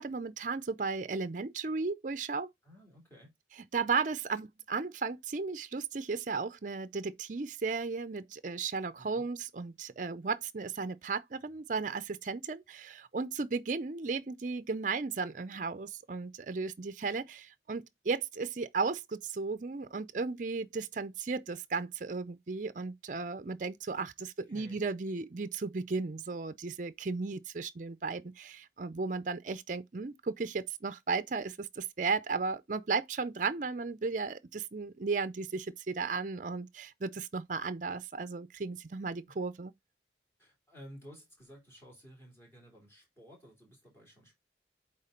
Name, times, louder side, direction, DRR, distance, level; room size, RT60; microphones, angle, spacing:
voice 1, 0.0-2.5 3.6-39.7, right 4 dB, 45° right, 0.5 m, -35 dB
voice 2, 2.6-3.3 9.0-9.2 24.2-24.8 40.4-44.3, equal, 15° left, 3.4 m, -54 dB
8.6 x 3.6 x 3.8 m
head